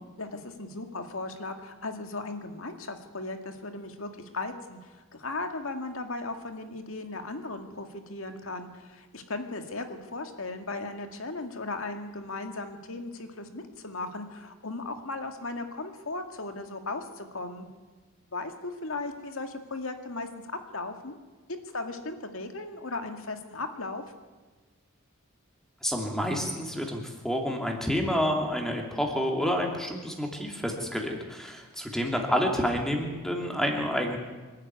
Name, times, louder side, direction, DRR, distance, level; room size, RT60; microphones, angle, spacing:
voice 1, 0.2-17.7 18.3-21.2 21.7-24.0, left 2 dB, 75° left, 6 dB, 2.1 m, -37 dB
voice 2, 25.8-34.2, equal, ahead, 1 dB, 2.8 m, -29 dB
25.5 x 12.5 x 9.5 m, 1.3 s
head